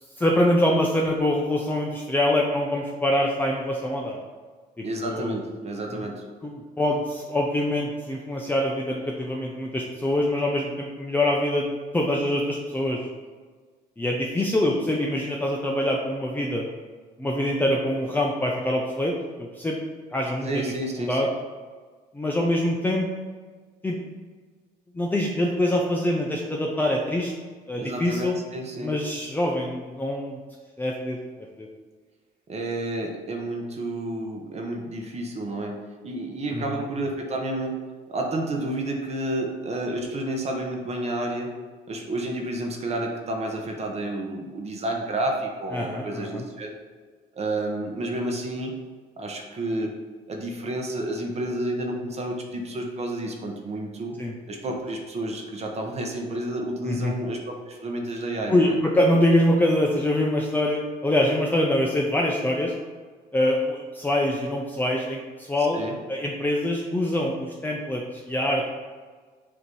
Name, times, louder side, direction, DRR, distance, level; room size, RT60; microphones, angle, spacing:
voice 1, 0.2-4.2 4.8-5.4 5.9-6.0 6.4-11.7 11.9-13.1 14.0-16.6 17.2-19.8 20.1-20.5 21.1-21.3 22.1-23.1 23.8-24.0 24.9-27.3 27.7-28.4 28.8-30.4 30.8-31.2 31.6-31.7 36.5-36.8 45.7-46.4 54.2-54.3 56.9-57.1 58.5-62.7 63.3-65.8 66.1-68.7, left 1 dB, 10° left, -2 dB, 0.7 m, -24 dB
voice 2, 4.8-6.2 20.4-21.2 27.8-28.9 29.2-29.3 32.5-37.8 38.1-41.5 41.9-46.7 47.3-48.7 49.2-50.0 50.3-54.2 54.5-58.8 65.6-66.0, right 1 dB, 40° right, 1 dB, 1.1 m, -30 dB
6.7 x 3.0 x 5.4 m, 1.5 s
cardioid pair, 110°, 17 cm